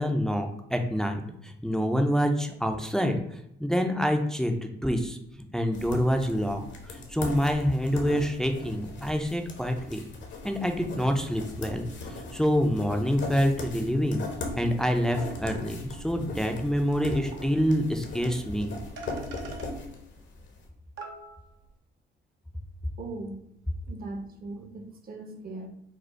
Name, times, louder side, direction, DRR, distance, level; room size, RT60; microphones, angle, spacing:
voice 1, 0.0-5.2 5.5-10.0 10.4-14.2 14.6-18.8, equal, 5° left, 4 dB, 0.5 m, -27 dB
sound 1, 5.7-20.5, left 2 dB, 65° left, 1.0 m, -39 dB
sound 2, 16.9-17.0 17.3-17.4 18.6-18.7 19.0-19.7 20.6-20.7 21.0-21.7, right 2 dB, 75° right, 0.9 m, -41 dB
voice 2, 23.0-23.4 23.9-25.7, right 2 dB, 50° right, 4 dB, 0.9 m, -39 dB
5.0 x 2.0 x 4.4 m, 0.78 s
cardioid pair, 90°, 20 cm